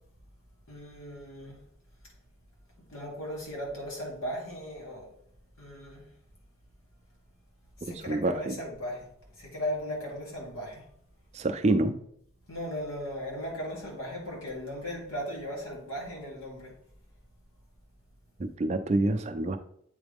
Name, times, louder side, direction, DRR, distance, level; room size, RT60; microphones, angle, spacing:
voice 1, 0.7-1.6 2.9-5.1 5.6-6.0 7.8-9.1 9.4-10.8 12.5-16.7, equal, 85° left, -2 dB, 2.3 m, -37 dB
voice 2, 8.1-8.5 11.3-12.0 18.4-19.6, right 2 dB, 30° right, 7 dB, 0.4 m, -27 dB
8.0 x 4.0 x 3.5 m, 0.68 s
head